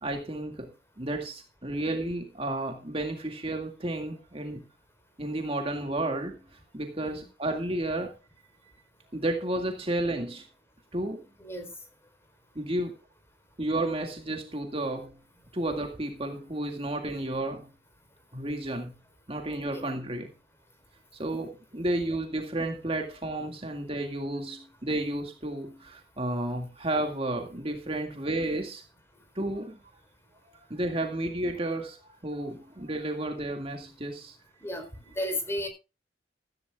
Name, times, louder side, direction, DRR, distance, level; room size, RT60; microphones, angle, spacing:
voice 1, 0.0-4.7 5.2-6.4 6.7-8.2 9.1-10.5 10.9-11.2 12.6-12.9 13.6-15.2 15.5-17.6 18.3-18.9 19.3-20.3 21.1-28.8 29.4-29.8 30.5-34.4, right 1 dB, 30° right, 2.1 m, -32 dB
voice 2, 11.4-11.7 19.7-19.8 34.6-35.7, left 1 dB, 15° left, 4.1 m, -34 dB
15.0 x 14.5 x 2.4 m
head